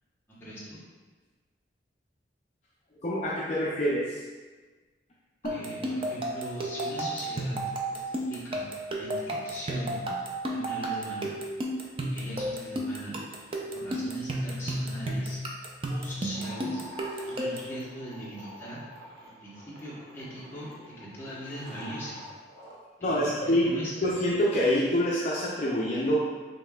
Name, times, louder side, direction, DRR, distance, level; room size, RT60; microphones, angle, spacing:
voice 1, 0.4-0.8 5.5-7.6 7.9-10.1 10.5-11.3 12.1-15.4 15.9-16.8 17.3-18.8 19.2-22.2 23.1-24.1, right 1 dB, 10° left, -8 dB, 1.0 m, -40 dB
voice 2, 3.0-4.2 5.4-5.6 12.0-12.1 23.0-23.7 24.0-26.2, equal, 40° left, -6 dB, 0.4 m, -26 dB
sound 1, 5.5-17.8, right 1 dB, 30° right, 0.4 m, -33 dB
sound 2, 16.3-22.8, equal, 60° right, 0.7 m, -47 dB
5.1 x 3.1 x 2.3 m, 1.3 s
head